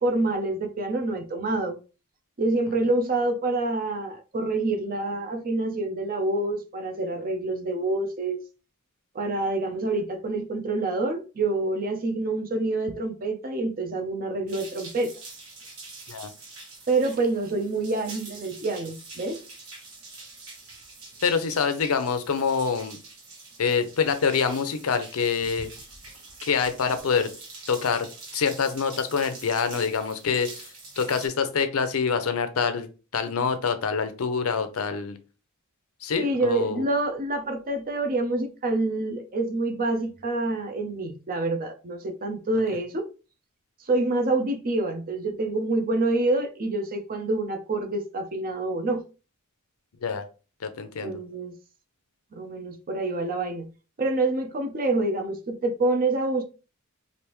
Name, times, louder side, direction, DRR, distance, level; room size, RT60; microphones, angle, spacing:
voice 1, 0.0-1.7 2.4-8.4 9.1-15.1 16.9-19.4 36.2-43.0 43.9-49.0 51.0-51.5 52.3-53.7 54.0-56.4, right 2 dB, 40° right, 0.6 m, -27 dB
sound 1, 14.5-31.3, right 3 dB, 90° right, 1.4 m, -45 dB
voice 2, 21.2-23.0 23.6-25.7 26.4-27.3 27.7-30.7 31.0-32.9 33.1-35.2 36.0-36.9 50.0-50.2 50.6-51.2, left 6 dB, 75° left, 0.5 m, -26 dB
3.3 x 2.6 x 3.0 m
head